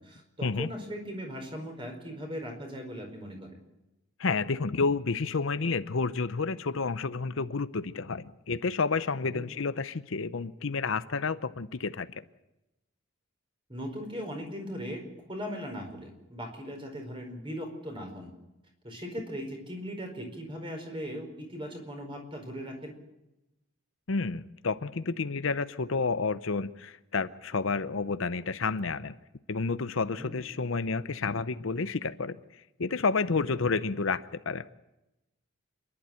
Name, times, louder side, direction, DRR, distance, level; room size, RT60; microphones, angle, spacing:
voice 1, 0.0-3.6 9.3-9.4 13.7-18.3 18.8-22.9 30.1-30.3, equal, 25° right, 4.6 m, -39 dB
voice 2, 4.2-12.2 24.1-29.1 29.5-32.4 32.8-34.6, left 4 dB, 65° left, 0.7 m, -30 dB
27.5 x 11.5 x 9.0 m
head